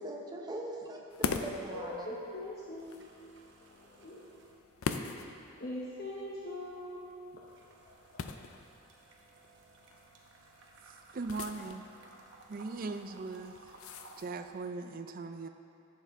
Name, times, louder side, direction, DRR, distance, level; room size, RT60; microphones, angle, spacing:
voice 1, 0.0-2.2, right 1 dB, 20° right, -1 dB, 0.9 m, -41 dB
sound 1, 1.1-14.7, left 5 dB, 80° left, 0.5 m, -43 dB
voice 2, 1.7-3.0 3.8-4.3 5.5-7.0 7.8-8.2, left 1 dB, 45° left, -6 dB, 0.9 m, -42 dB
sound 2, 1.7-2.2 2.5-5.1 5.4-14.2, right 3 dB, 55° right, 1.0 m, -58 dB
voice 3, 11.1-11.9 12.5-13.7 14.2-15.5, right 3 dB, 40° right, 8 dB, 0.4 m, -39 dB
11.5 x 7.8 x 3.6 m, 2.7 s
head